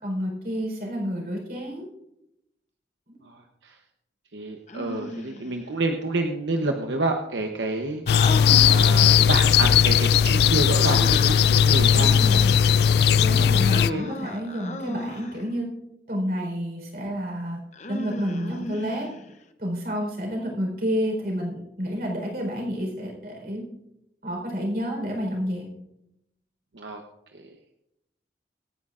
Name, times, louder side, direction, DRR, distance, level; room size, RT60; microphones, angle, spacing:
voice 1, 0.0-1.9 3.1-3.2 11.9-12.5 13.2-15.7 16.1-17.6 17.9-19.1 19.6-23.7 24.2-25.6, equal, 55° right, 0 dB, 4.4 m, -30 dB
voice 2, 3.2-3.8 4.3-12.7 13.4-13.5 13.7-14.1 20.3-20.5 26.7-27.0 27.3-27.5, right 2 dB, 85° right, 3 dB, 1.0 m, -29 dB
Human voice, 4.7-5.6 8.1-9.4 10.9-11.7 13.7-15.5 17.7-19.3, left 2 dB, 40° left, 0.8 m, -35 dB
sound 1, 8.1-13.9, left 8 dB, 65° left, 0.3 m, -18 dB
25.5 x 9.7 x 2.5 m, 0.86 s
head